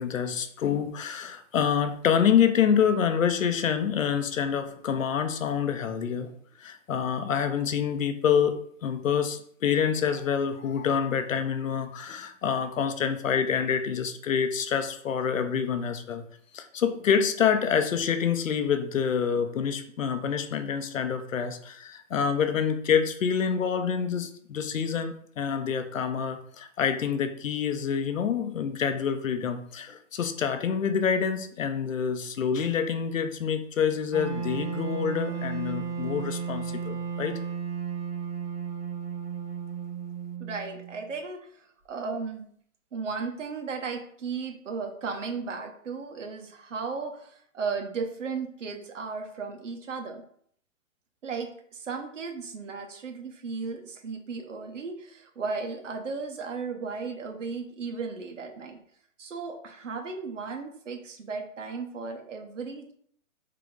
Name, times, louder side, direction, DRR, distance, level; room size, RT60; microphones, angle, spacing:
voice 1, 0.0-6.3 6.6-16.2 16.5-37.4, left 7 dB, 70° left, 9 dB, 0.7 m, -27 dB
Wind instrument woodwind instrument, 34.1-41.1, right 6 dB, 30° right, 1.9 m, -34 dB
voice 2, 40.4-42.5 42.9-50.2 51.2-58.8 59.2-62.9, right 4 dB, 65° right, 4 dB, 0.9 m, -35 dB
3.7 x 3.3 x 3.8 m, 0.63 s
hypercardioid pair, 175°, 41 cm